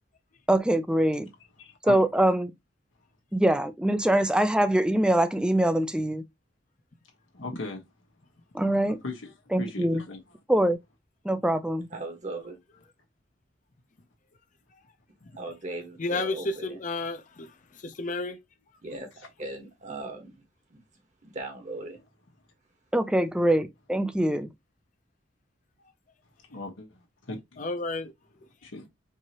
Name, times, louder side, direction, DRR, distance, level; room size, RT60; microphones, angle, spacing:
voice 1, 0.5-1.3 1.8-2.5 3.3-6.2 8.5-9.0 9.5-10.0 10.5-10.8 11.2-11.9 22.9-24.5, right 1 dB, 5° right, 0.4 m, -23 dB
voice 2, 1.6-2.0 7.3-7.8 9.0-10.2 26.5-27.4 28.6-28.9, left 3 dB, 90° left, 1.2 m, -38 dB
voice 3, 11.9-12.6 15.3-16.8 18.8-19.1 19.4-20.4 20.7-20.8 21.2-22.0, right 2 dB, 40° right, 1.2 m, -38 dB
voice 4, 16.0-17.5 17.8-18.4 27.6-28.1, left 2 dB, 40° left, 0.7 m, -31 dB
4.7 x 2.8 x 2.9 m
head